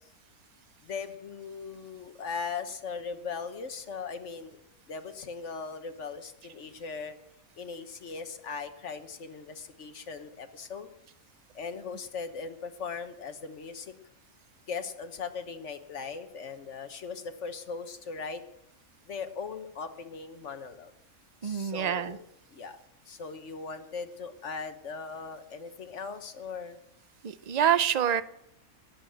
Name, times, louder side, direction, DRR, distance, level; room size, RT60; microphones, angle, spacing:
voice 1, 0.8-4.6 4.9-7.2 7.5-10.9 11.5-13.9 14.7-18.4 19.1-20.9 21.4-22.2 22.5-22.8 23.1-26.8, left 5 dB, 55° left, 9 dB, 1.4 m, -39 dB
voice 2, 21.4-22.2 27.2-28.2, right 9 dB, 50° right, 14 dB, 0.5 m, -26 dB
20.0 x 7.9 x 7.8 m, 0.80 s
omnidirectional pair, 1.5 m